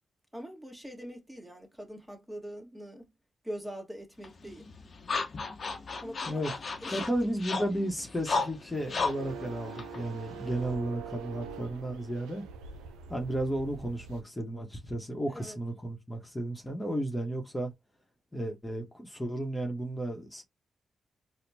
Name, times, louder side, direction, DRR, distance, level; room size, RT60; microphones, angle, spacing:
voice 1, 0.3-3.1 3.4-4.7 6.0-7.1 15.3-15.6, equal, 5° right, 1.6 m, -43 dB
sound 1, 4.2-10.7, left 4 dB, 55° left, 0.9 m, -35 dB
voice 2, 6.9-12.4 13.1-17.7 18.3-20.4, right 1 dB, 20° left, 1.2 m, -33 dB
sound 2, 8.7-14.2, right 6 dB, 90° right, 0.4 m, -44 dB
4.3 x 2.3 x 2.7 m
hypercardioid pair, 40°, 0 cm